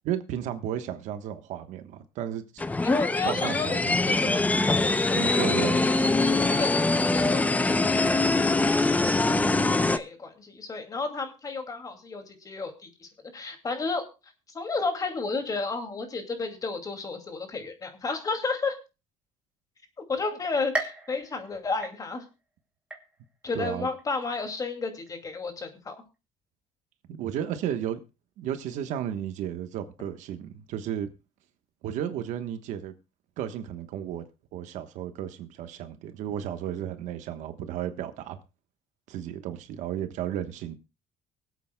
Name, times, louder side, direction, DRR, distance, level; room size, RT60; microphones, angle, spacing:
voice 1, 0.0-2.4 3.2-4.4 5.2-5.8 23.5-23.9 27.1-28.0 28.4-31.1 31.8-32.9 33.4-34.2 34.5-38.4 39.1-40.8, right 10 dB, 75° right, 1.2 m, -33 dB
sound 1, 2.6-10.0, left 2 dB, 10° left, 0.5 m, -23 dB
voice 2, 2.8-4.4 4.8-5.8 6.2-8.7 9.6-14.0 14.5-18.8 20.1-22.2 23.4-26.0, left 4 dB, 30° left, 2.4 m, -32 dB
sound 2, 20.7-22.4 22.9-23.5 24.0-24.1 25.1-25.2, right 2 dB, 10° right, 2.4 m, -36 dB
24.0 x 8.3 x 2.2 m
cardioid pair, 120°, 13 cm